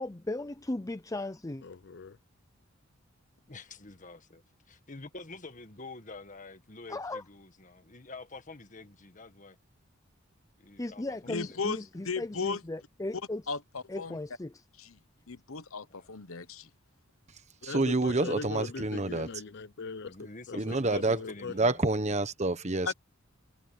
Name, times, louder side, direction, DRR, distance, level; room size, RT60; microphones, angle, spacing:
voice 1, 0.0-1.6 6.9-7.2 10.8-13.4 13.9-14.5, left 2 dB, 15° left, 0.5 m, -36 dB
voice 2, 1.6-2.2 17.6-21.5, left 4 dB, 55° left, 0.6 m, -40 dB
voice 3, 3.5-4.4 4.7-9.6 10.6-11.6 15.9-16.1 20.1-21.8, left 3 dB, 40° left, 1.6 m, -47 dB
voice 4, 11.3-11.8 12.0-12.6 13.5-14.2 14.8-14.9 15.3-16.7 22.9-23.0, left 4 dB, 85° left, 1.2 m, -35 dB
voice 5, 17.6-19.3 20.5-21.2 21.5-22.9, right 2 dB, 35° right, 1.2 m, -28 dB
head